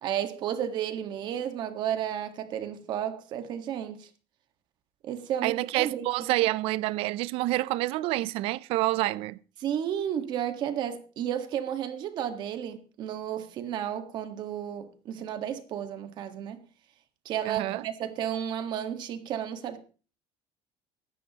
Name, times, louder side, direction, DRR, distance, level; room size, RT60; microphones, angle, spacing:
voice 1, 0.0-4.1 5.0-6.0 9.6-16.6 17.2-19.8, right 10 dB, 45° right, 1.5 m, -32 dB
voice 2, 5.4-9.4 17.4-17.8, right 18 dB, 65° right, 0.5 m, -28 dB
24.5 x 9.9 x 2.9 m
cardioid pair, 175°, 10 cm